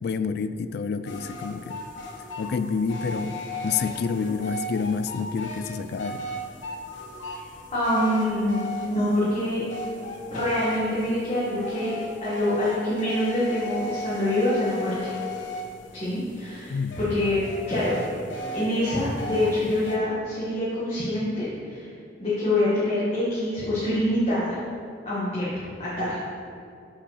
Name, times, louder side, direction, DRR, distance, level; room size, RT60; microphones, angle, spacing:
voice 1, 0.0-1.8 2.4-3.4 3.6-6.2 16.7-17.0, left 5 dB, 55° left, 12 dB, 0.3 m, -28 dB
sound 1, 1.1-20.0, left 1 dB, 85° left, 1.0 m, -36 dB
voice 2, 7.7-9.6 10.3-11.9 12.2-15.1 15.9-17.4 17.7-18.0 18.5-21.9 22.2-24.6 25.0-25.5 25.8-26.1, left 1 dB, 30° left, -10 dB, 1.6 m, -25 dB
5.6 x 5.2 x 6.4 m, 2.5 s
head